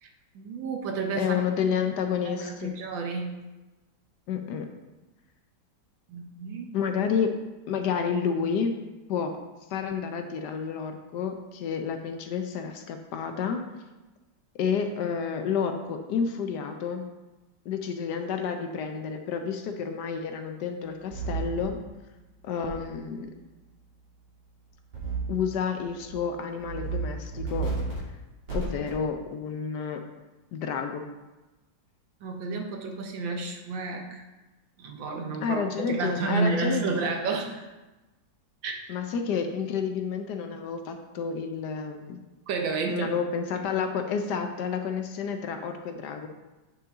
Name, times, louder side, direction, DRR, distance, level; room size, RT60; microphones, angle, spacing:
voice 1, 0.3-1.4 2.2-3.3 6.1-6.7 32.2-34.2 34.8-37.7 38.6-38.8 42.5-43.1, right 4 dB, 90° right, 3 dB, 1.7 m, -31 dB
voice 2, 1.2-2.7 4.3-4.7 6.7-7.3 7.7-8.7 9.1-9.3 9.7-13.6 14.6-17.0 17.7-21.8 22.4-23.3 25.3-27.7 28.5-30.0 30.5-31.0 35.4-37.0 38.9-42.2 42.9-46.3, left 6 dB, 70° left, 6 dB, 1.2 m, -30 dB
sound 1, 21.1-21.6 22.6-22.7 24.9-25.4 25.8-26.1 26.6-27.0 27.3-28.0 28.5-28.9, right 4 dB, 60° right, 3.4 m, -32 dB
8.6 x 5.7 x 3.6 m, 1.1 s
omnidirectional pair, 2.0 m